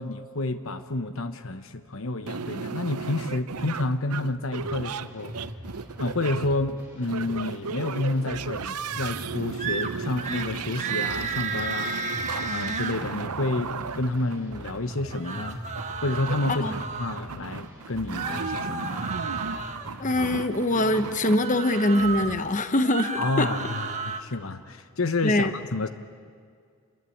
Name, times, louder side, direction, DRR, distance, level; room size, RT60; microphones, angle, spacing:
voice 1, 0.0-5.3 6.0-12.0 12.5-15.6 16.0-16.7 17.0-19.1 23.2-25.9, left 2 dB, 65° left, 10 dB, 1.0 m, -29 dB
sound 1, 2.3-21.4, right 5 dB, 90° right, 0.8 m, -35 dB
sound 2, 4.6-22.5, equal, 10° right, 6.2 m, -43 dB
sound 3, 9.6-9.9 10.2-10.5 10.8-13.0 15.0-17.2 18.1-19.9 21.3-22.3 22.8-24.2, right 4 dB, 30° right, 1.4 m, -32 dB
voice 2, 20.0-23.1 23.4-23.5 25.2-25.5, left 1 dB, 35° left, 10 dB, 1.1 m, -23 dB
28.5 x 22.5 x 8.7 m, 2.1 s
head